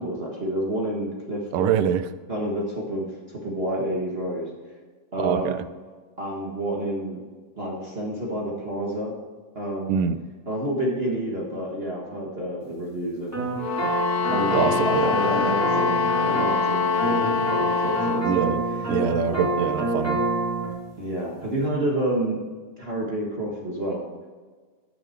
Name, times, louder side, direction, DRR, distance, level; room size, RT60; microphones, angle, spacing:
voice 1, 0.0-1.8 2.3-4.5 5.1-5.6 6.2-7.2 7.5-9.1 9.5-9.9 10.5-13.4 14.2-18.5 19.3-19.6 21.0-22.4 22.8-24.0, right 1 dB, 55° right, -2 dB, 0.6 m, -29 dB
voice 2, 1.5-2.1 5.2-5.6 9.9-10.2 14.5-15.1 18.2-18.6 18.9-20.2, right 8 dB, 90° right, 12 dB, 2.3 m, -24 dB
sound 1, 13.3-20.7, right 2 dB, 5° right, 1.8 m, -27 dB
sound 2, 13.6-18.3, left 7 dB, 90° left, 2.7 m, -25 dB
12.5 x 6.6 x 4.5 m, 1.4 s
omnidirectional pair, 3.7 m